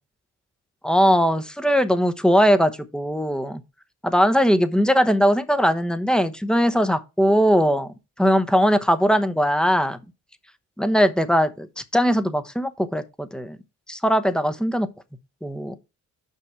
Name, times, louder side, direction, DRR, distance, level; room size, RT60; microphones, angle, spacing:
voice 1, 0.8-3.6 4.0-10.0 10.8-13.6 13.9-14.9 15.4-15.8, equal, 5° left, 0.9 m, -20 dB
5.9 x 5.6 x 4.9 m
cardioid pair, 90°, 30 cm